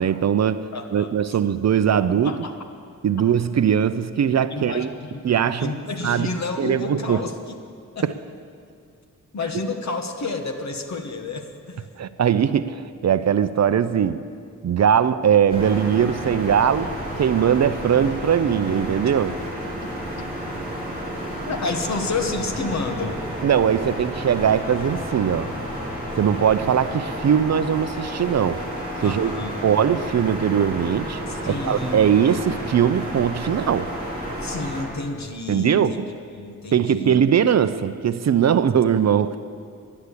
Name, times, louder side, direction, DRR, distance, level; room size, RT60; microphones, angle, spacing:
voice 1, 0.0-2.4 3.0-4.9 5.2-5.7 6.0-6.3 6.6-7.2 8.0-8.1 12.0-14.3 14.6-16.9 17.2-19.4 23.4-25.5 26.2-28.6 29.0-29.3 29.6-33.9 35.5-36.1 36.7-39.4, right 8 dB, 55° right, 0.5 m, -20 dB
voice 2, 0.7-1.4 2.2-2.6 4.5-5.3 5.6-7.4 7.9-8.1 9.3-11.9 19.7-19.9 20.2-20.3 21.4-23.2 29.0-29.5 31.3-32.4 34.4-36.0 36.3-37.2, left 3 dB, 55° left, 1.2 m, -30 dB
sound 1, 15.5-34.8, equal, 20° right, 3.4 m, -31 dB
11.5 x 11.0 x 8.3 m
wide cardioid pair, 175°, 33 cm